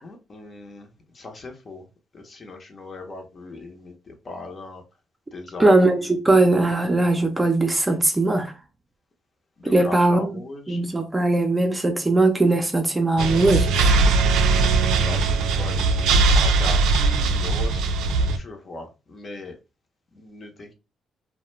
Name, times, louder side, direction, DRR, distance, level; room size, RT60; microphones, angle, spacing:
voice 1, 0.0-1.9 2.1-4.8 5.3-6.2 9.6-10.8 13.9-14.3 14.9-17.9 18.3-19.5 20.1-20.7, left 3 dB, 40° left, 0.7 m, -39 dB
voice 2, 5.6-8.5 9.6-10.3 10.7-14.0, right 2 dB, 15° right, 0.5 m, -20 dB
sound 1, 13.2-18.4, right 3 dB, 90° right, 0.3 m, -20 dB
2.2 x 2.1 x 3.1 m
cardioid pair, 90°, 0 cm